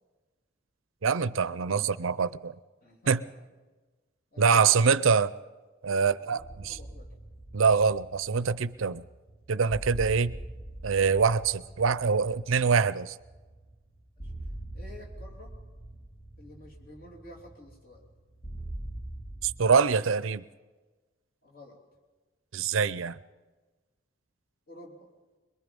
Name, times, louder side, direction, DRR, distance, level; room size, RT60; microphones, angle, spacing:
voice 1, 1.0-2.5 3.1-3.2 4.4-5.3 5.8-6.8 7.5-9.0 9.5-10.4 10.8-13.1 19.4-20.4 22.5-23.2, right 5 dB, 85° right, 0.6 m, -24 dB
voice 2, 2.8-3.5 4.3-4.9 6.1-7.1 14.2-14.3 14.7-15.5 16.4-18.0 21.4-21.8 24.7-25.1, left 1 dB, 45° left, 3.2 m, -50 dB
sound 1, 6.4-19.6, right 1 dB, 60° left, 4.6 m, -43 dB
23.0 x 22.0 x 5.4 m
head